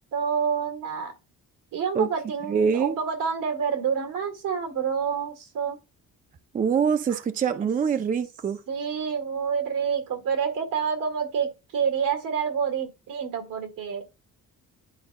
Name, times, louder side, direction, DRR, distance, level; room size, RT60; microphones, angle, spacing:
voice 1, 0.1-1.1 1.7-5.8 8.7-14.0, right 6 dB, 80° right, 2.0 m, -28 dB
voice 2, 2.5-2.9 6.5-8.6, right 6 dB, 25° right, 0.4 m, -24 dB
11.5 x 4.4 x 2.2 m
cardioid pair, 150°, 33 cm